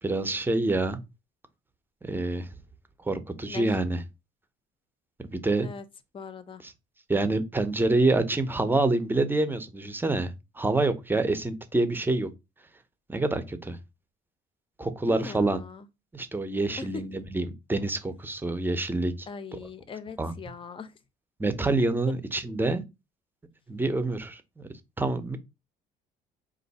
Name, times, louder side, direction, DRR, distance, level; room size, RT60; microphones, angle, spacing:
voice 1, 0.0-1.0 2.0-2.5 3.1-4.0 5.2-5.7 6.6-6.7 7.1-12.3 13.1-13.8 14.8-15.6 16.1-19.3 19.5-19.6 20.2-20.3 21.4-22.8 23.7-24.4 25.0-25.4, right 2 dB, 10° right, 0.7 m, -27 dB
voice 2, 6.1-6.6 15.1-15.8 16.8-16.9 19.3-20.9, left 5 dB, 30° left, 0.7 m, -41 dB
4.5 x 2.6 x 4.1 m
cardioid pair, 110°, 17 cm